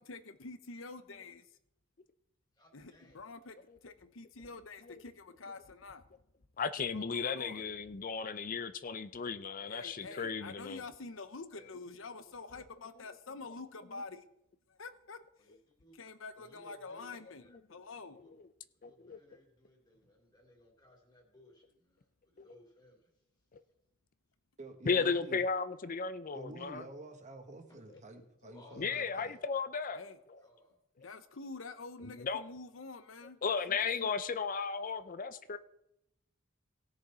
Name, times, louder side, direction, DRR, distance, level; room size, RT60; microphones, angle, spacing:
voice 1, 0.0-1.4 2.7-3.6 3.8-6.0 6.9-7.6 9.7-14.2 14.7-15.2 15.9-18.2 29.9-30.2 31.0-33.4 33.7-34.1, left 3 dB, 80° left, 11 dB, 0.9 m, -47 dB
voice 2, 2.6-3.2 9.8-10.2 11.5-11.7 15.4-16.0 16.3-17.6 18.1-18.3 18.8-23.1 28.5-29.4 29.8-30.8 34.7-35.6, left 1 dB, 20° left, 0 dB, 2.9 m, -62 dB
voice 3, 6.6-10.8 18.8-19.2 22.4-22.5 24.9-26.9 28.8-30.0 32.0-32.4 33.4-35.6, left 5 dB, 45° left, 13 dB, 0.5 m, -35 dB
voice 4, 24.6-25.4 26.3-29.4, right 2 dB, 35° right, 5 dB, 1.4 m, -49 dB
17.5 x 6.6 x 4.3 m, 0.82 s
head